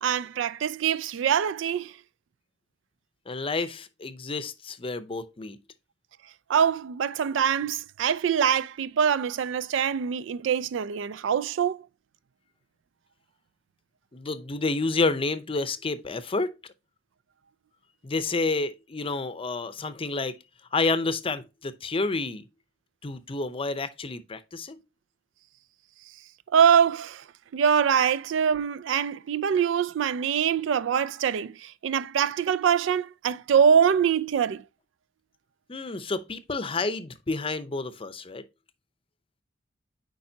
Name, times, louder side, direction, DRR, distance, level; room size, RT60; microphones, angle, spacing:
voice 1, 0.0-1.9 6.5-11.9 26.5-27.2 27.5-34.6, right 7 dB, 80° right, 0.3 m, -24 dB
voice 2, 3.3-5.6 14.1-16.5 18.0-20.3 20.7-22.5 23.0-24.8 35.7-38.5, left 3 dB, 30° left, 0.6 m, -29 dB
8.7 x 4.7 x 2.7 m
head